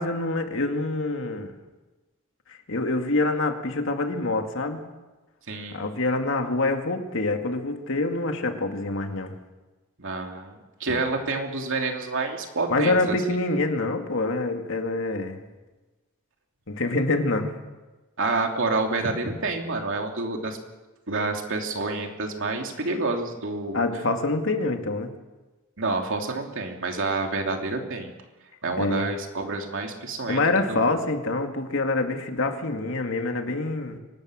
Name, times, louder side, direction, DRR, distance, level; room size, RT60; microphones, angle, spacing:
voice 1, 0.0-1.6 2.5-4.8 5.7-9.3 12.7-15.4 16.7-17.6 23.7-25.1 28.8-29.1 30.3-34.0, left 2 dB, 65° left, 5 dB, 2.2 m, -26 dB
voice 2, 5.5-5.9 10.0-13.1 18.2-20.6 21.1-23.8 25.8-28.1 28.6-30.4 30.7-30.8, right 3 dB, 60° right, 2 dB, 3.0 m, -28 dB
24.5 x 19.0 x 6.4 m, 1.2 s
head